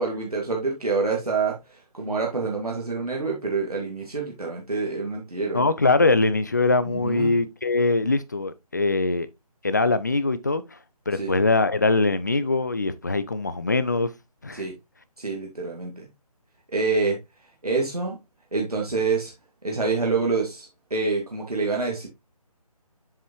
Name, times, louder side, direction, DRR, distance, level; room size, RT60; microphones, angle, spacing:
voice 1, 0.0-5.6 6.9-7.3 11.1-11.3 14.5-14.8 15.2-16.1 16.7-17.2 17.6-18.2 18.5-19.3 19.6-22.1, right 4 dB, 75° right, 2.0 m, -27 dB
voice 2, 5.5-9.3 9.6-10.6 11.1-14.1 14.4-14.6, left 3 dB, 30° left, 0.4 m, -22 dB
7.3 x 5.2 x 3.0 m
figure-of-eight pair, 150°, 20 cm